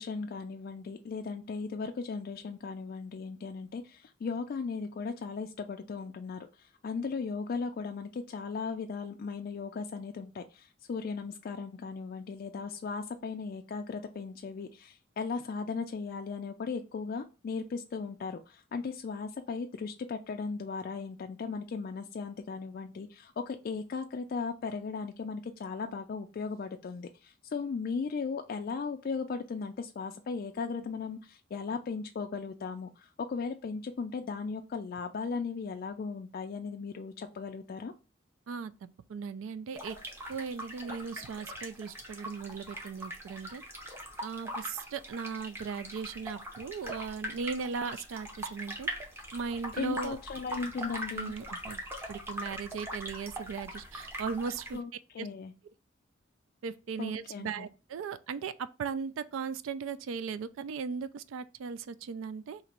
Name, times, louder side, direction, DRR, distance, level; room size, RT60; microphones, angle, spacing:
voice 1, 0.0-37.9 49.7-51.3 54.7-55.5 57.0-57.7, left 5 dB, 45° left, 0.3 m, -37 dB
voice 2, 39.1-40.0 40.3-43.6 44.2-48.9 49.3-50.2 51.1-51.8 52.1-54.8 55.2-55.3 56.6-62.6, right 5 dB, 75° right, 0.3 m, -37 dB
sound 1, 39.7-54.8, equal, 10° right, 0.7 m, -41 dB
2.9 x 2.6 x 4.2 m
head